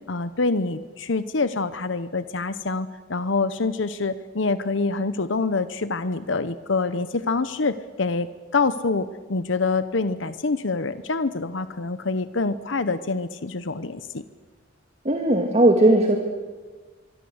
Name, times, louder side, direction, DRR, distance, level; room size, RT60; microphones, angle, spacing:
voice 1, 0.1-14.2, left 3 dB, 70° left, 13 dB, 0.9 m, -26 dB
voice 2, 15.0-16.2, right 1 dB, 35° right, 3 dB, 2.1 m, -17 dB
25.0 x 24.0 x 8.0 m, 1.4 s
head